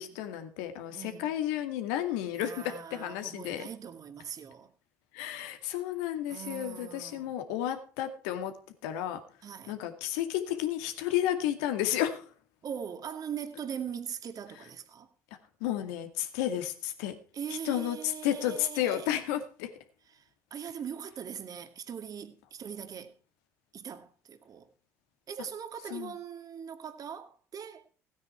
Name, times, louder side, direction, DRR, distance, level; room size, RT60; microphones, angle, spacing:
voice 1, 0.0-3.7 5.1-8.5 8.8-9.2 9.7-12.3 15.6-17.1 17.6-19.7 25.9-26.1, left 12 dB, 75° left, 2.2 m, -32 dB
voice 2, 0.9-1.4 2.3-4.7 6.3-7.3 9.4-9.8 12.6-15.1 17.3-19.2 20.1-23.2 23.7-24.7 25.3-27.9, right 8 dB, 45° right, 2.1 m, -41 dB
16.5 x 9.3 x 4.6 m
hypercardioid pair, 65°, 9 cm